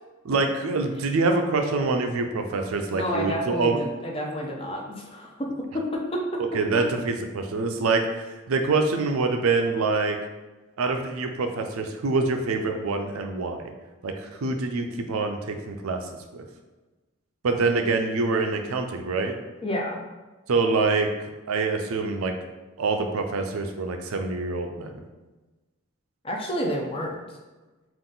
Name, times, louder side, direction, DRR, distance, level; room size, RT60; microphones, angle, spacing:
voice 1, 0.2-3.8 6.5-10.2 10.8-13.7 14.0-16.0 16.3-16.4 17.4-19.4 20.5-22.3 22.8-25.0, right 3 dB, 80° right, 5 dB, 0.5 m, -25 dB
voice 2, 2.9-5.5 6.1-6.2 19.6-20.0 26.2-27.2, equal, 25° left, 0 dB, 0.6 m, -29 dB
3.8 x 2.5 x 3.8 m, 1.2 s
head